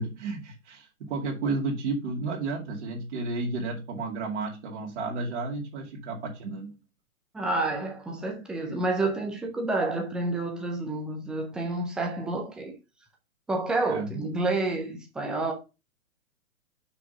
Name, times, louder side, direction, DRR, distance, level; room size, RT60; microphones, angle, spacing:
voice 1, 0.0-6.8 13.9-14.1, right 3 dB, 55° right, 2.3 m, -32 dB
voice 2, 7.3-12.7 13.5-15.5, right 2 dB, ahead, 0.4 m, -29 dB
5.9 x 5.7 x 5.2 m
hypercardioid pair, 125°, 43 cm